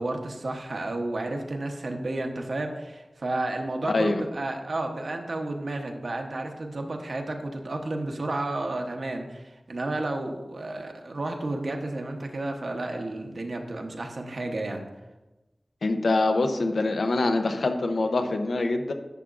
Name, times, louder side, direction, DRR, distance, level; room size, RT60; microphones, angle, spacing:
voice 1, 0.0-14.9, right 2 dB, 70° right, 3 dB, 0.9 m, -32 dB
voice 2, 3.9-4.2 15.8-18.9, left 2 dB, 90° left, 6 dB, 0.7 m, -24 dB
10.5 x 6.9 x 2.5 m, 1.1 s
wide cardioid pair, 85°, 0 cm